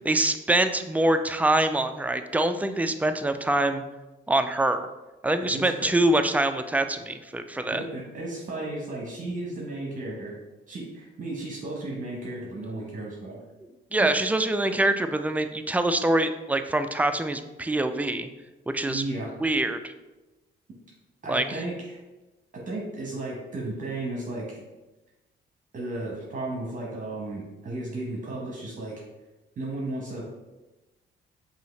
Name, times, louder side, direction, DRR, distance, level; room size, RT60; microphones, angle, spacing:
voice 1, 0.1-3.8 4.3-4.9 5.2-7.8 13.9-18.3 18.7-19.0 19.4-19.9 21.3-21.4, right 1 dB, 10° right, 8 dB, 0.3 m, -24 dB
voice 2, 5.3-5.9 7.7-10.3 10.7-13.4 14.0-14.2 17.6-17.8 18.9-19.3 21.2-22.0 22.7-24.6 25.7-28.9 29.6-30.3, right 2 dB, 40° right, -3 dB, 1.1 m, -34 dB
5.6 x 2.7 x 3.2 m, 1.1 s
cardioid pair, 90°, 20 cm